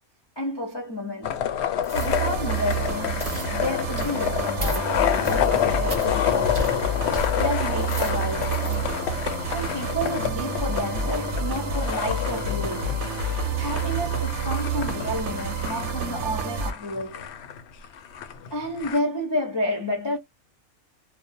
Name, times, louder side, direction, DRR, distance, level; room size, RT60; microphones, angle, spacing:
voice 1, 0.4-1.4 1.9-6.8 7.3-8.9 9.5-13.0 13.6-17.3 18.5-20.2, left 1 dB, 30° left, 0.4 m, -30 dB
sound 1, 1.2-19.0, left 10 dB, 65° left, 0.7 m, -29 dB
sound 2, 1.8-2.2 2.6-2.9 3.2-3.5 4.0-4.2 4.6-4.8 5.2-5.5 5.9-6.1 6.5-6.7 7.1-7.3 7.7-8.8 9.2-9.3, right 2 dB, 30° right, 0.6 m, -36 dB
sound 3, 1.9-16.7, right 4 dB, 65° right, 0.8 m, -29 dB
2.3 x 2.0 x 2.6 m
omnidirectional pair, 1.5 m